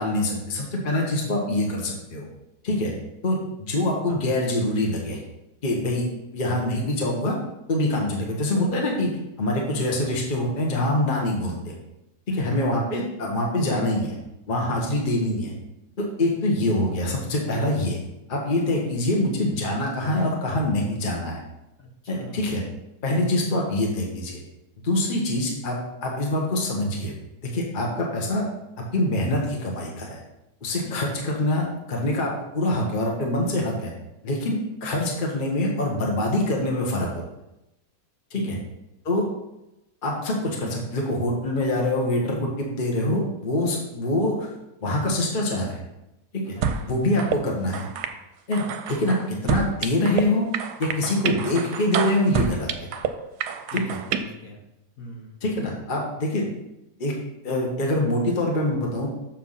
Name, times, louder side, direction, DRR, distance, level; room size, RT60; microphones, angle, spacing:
voice 1, 0.0-2.2 2.6-2.9 3.2-5.2 5.6-6.1 6.3-7.3 7.7-9.1 9.4-11.7 12.3-14.2 14.5-15.5 16.0-18.0 18.3-21.4 22.1-22.6 23.0-24.4 24.8-27.1 27.4-28.4 28.9-30.2 30.6-33.9 34.2-37.2 38.3-38.6 39.0-39.2 40.0-44.5 44.8-45.8 46.3-46.5 46.9-47.9 48.5-50.5 50.8-52.9 53.7-54.0 55.4-56.5 57.0-57.1 57.4-59.1, left 1 dB, 35° left, -1 dB, 1.3 m, -25 dB
voice 2, 12.3-12.7 14.8-15.0 21.8-22.5 30.8-31.1 38.3-38.6 46.6-46.9 53.7-54.6 55.0-55.4, equal, 55° left, -1 dB, 1.7 m, -41 dB
sound 1, 46.6-46.8 47.2-47.4 47.7-48.1 48.5-50.2 50.5-53.1 53.4-54.2, right 7 dB, 75° right, 1.1 m, -28 dB
6.9 x 4.6 x 5.6 m, 0.91 s
omnidirectional pair, 1.8 m